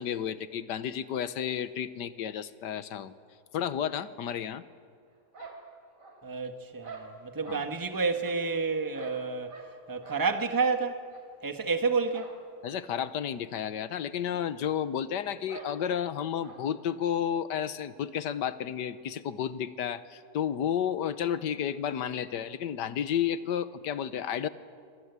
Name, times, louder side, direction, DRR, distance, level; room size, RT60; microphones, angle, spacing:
voice 1, 0.0-3.1 3.5-4.6 7.5-7.7 12.6-24.5, left 9 dB, 85° left, 14 dB, 1.6 m, -32 dB
sound 1, 5.3-6.4 6.8-7.7 8.2-9.8 10.0-10.3 10.6-10.8 11.1-11.2 12.1-12.4 12.6-12.7 13.1-13.2 14.1-14.2 14.5-14.6 15.5-15.7 16.4-16.6, right 4 dB, 50° right, 4.0 m, -47 dB
voice 2, 6.2-9.6 9.9-11.0 11.4-12.3, right 4 dB, 15° right, 6 dB, 1.3 m, -29 dB
29.0 x 24.0 x 8.2 m, 2.2 s
omnidirectional pair, 1.8 m